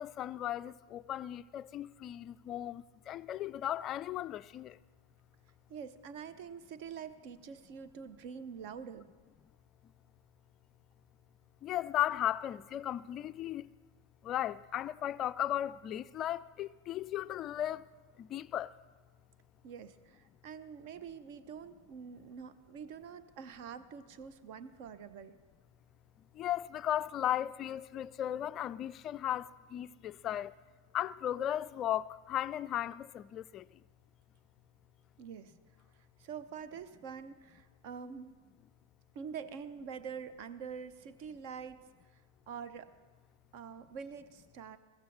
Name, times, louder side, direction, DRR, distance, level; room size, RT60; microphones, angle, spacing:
voice 1, 0.0-4.8 11.6-13.7 14.2-17.9 18.2-18.7 26.3-30.5 30.9-33.7, left 11 dB, 30° left, 0.3 m, -36 dB
voice 2, 5.7-9.1 19.6-25.3 35.2-35.5 36.2-38.3 39.1-41.8 42.5-42.9 43.5-44.8, right 7 dB, 45° right, 0.7 m, -45 dB
22.0 x 15.0 x 3.3 m
figure-of-eight pair, 90°, 0 cm